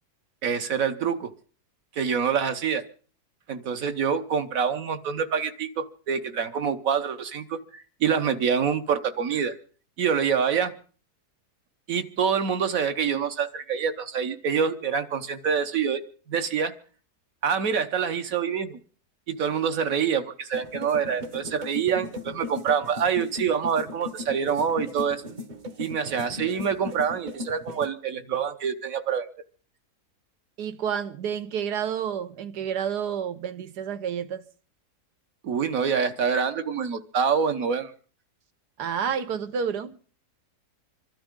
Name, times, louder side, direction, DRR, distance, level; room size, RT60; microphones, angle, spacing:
voice 1, 0.4-1.3 2.0-2.8 3.5-7.6 8.0-9.5 10.0-10.7 11.9-16.0 16.3-16.7 17.4-18.8 19.3-25.2 25.8-29.3 35.4-37.9, right 7 dB, 60° right, 1.4 m, -26 dB
sound 1, 20.5-27.9, left 2 dB, 35° right, 0.9 m, -38 dB
voice 2, 30.6-34.4 38.8-39.9, right 7 dB, 80° right, 1.5 m, -29 dB
25.5 x 12.5 x 3.7 m
omnidirectional pair, 1.7 m